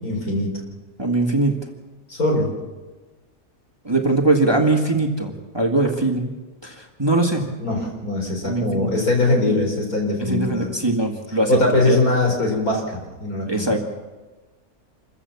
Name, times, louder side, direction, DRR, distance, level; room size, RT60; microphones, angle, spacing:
voice 1, 0.0-0.5 2.1-2.5 7.6-10.7 11.5-13.7, left 2 dB, 75° left, 1 dB, 4.9 m, -21 dB
voice 2, 1.0-1.6 3.8-6.3 6.6-7.5 8.4-8.9 10.2-12.0 13.5-13.8, right 2 dB, 15° right, 2 dB, 1.8 m, -21 dB
26.5 x 14.5 x 7.1 m, 1.2 s
omnidirectional pair, 1.6 m